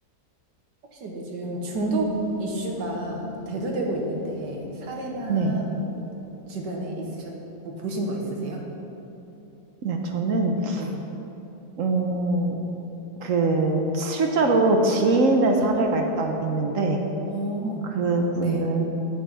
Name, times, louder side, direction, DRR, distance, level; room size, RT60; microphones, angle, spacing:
voice 1, 0.9-6.1 6.5-7.3 7.6-8.6 10.7-10.9 17.3-18.0 18.4-18.6, right 2 dB, 80° right, 0 dB, 1.7 m, -30 dB
sound 1, 1.7-8.1, left 6 dB, 25° left, 0.7 m, -41 dB
voice 2, 5.3-5.6 9.8-10.9 11.8-12.6 13.2-17.0 17.9-18.8, right 2 dB, 60° right, 3 dB, 1.0 m, -22 dB
8.7 x 6.9 x 5.6 m, 2.9 s
omnidirectional pair, 1.9 m